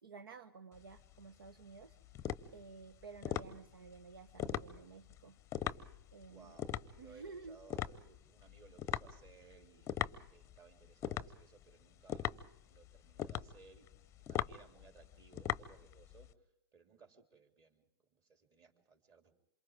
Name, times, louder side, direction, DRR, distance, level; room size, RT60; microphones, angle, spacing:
voice 1, 0.0-2.0 2.5-5.4 6.1-6.6 7.0-7.6, right 4 dB, 65° right, 9 dB, 1.1 m, -53 dB
sound 1, 0.7-16.3, left 10 dB, 25° left, 0.8 m, -41 dB
voice 2, 6.2-9.9 10.3-12.4 12.7-13.9 14.3-17.8 18.1-19.4, right 5 dB, 30° right, 4 dB, 3.4 m, -62 dB
28.5 x 27.0 x 3.7 m, 0.72 s
figure-of-eight pair, 105°, 13 cm